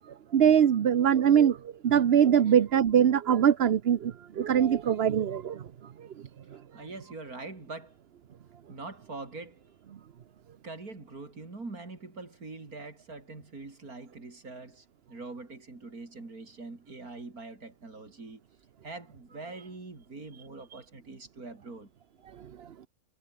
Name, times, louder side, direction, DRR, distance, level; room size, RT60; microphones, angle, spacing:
voice 1, 0.3-1.6 1.8-5.6, right 9 dB, 50° right, 0.9 m, -22 dB
voice 2, 6.5-8.0 8.7-9.7 10.6-18.4 18.8-21.9, right 3 dB, 85° right, 4.6 m, -43 dB
omnidirectional pair, 1.5 m